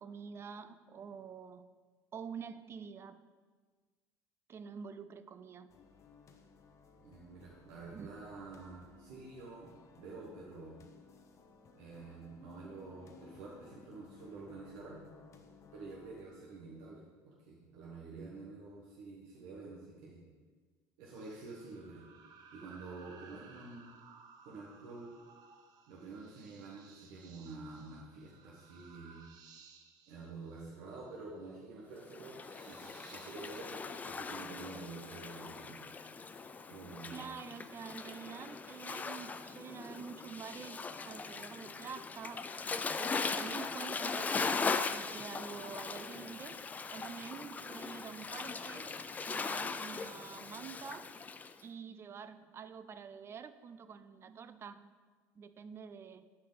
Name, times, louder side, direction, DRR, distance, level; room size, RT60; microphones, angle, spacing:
voice 1, 0.0-1.7 2.1-3.2 4.5-5.7 7.9-8.1 37.1-40.8 41.0-42.5 43.0-49.0 49.3-51.1 51.6-54.9 55.3-56.3, right 6 dB, 35° right, 12 dB, 0.5 m, -47 dB
sound 1, 5.7-16.2, left 5 dB, 45° left, 0.8 m, -59 dB
voice 2, 7.0-10.8 11.7-15.1 15.7-20.2 21.0-22.0 22.5-23.9 24.4-25.1 25.9-29.2 30.1-35.8 36.2-36.4 36.7-37.3, right 3 dB, 85° right, -4 dB, 1.3 m, -49 dB
sound 2, 21.1-35.0, right 6 dB, 65° right, 0.8 m, -60 dB
Waves surf, 32.1-51.5, left 4 dB, 20° left, 0.4 m, -40 dB
11.0 x 4.8 x 4.0 m, 1.4 s
cardioid pair, 110°, 7 cm